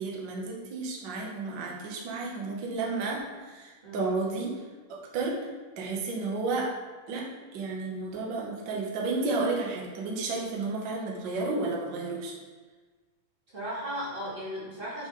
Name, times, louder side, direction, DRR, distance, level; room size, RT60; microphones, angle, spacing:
voice 1, 0.0-4.5 4.9-5.5 5.8-6.7 7.1-7.3 7.5-12.4, right 3 dB, 75° right, -2 dB, 1.0 m, -32 dB
voice 2, 10.4-10.7 13.5-15.1, equal, 35° right, -8 dB, 0.8 m, -36 dB
7.9 x 3.2 x 3.8 m, 1.4 s
omnidirectional pair, 3.6 m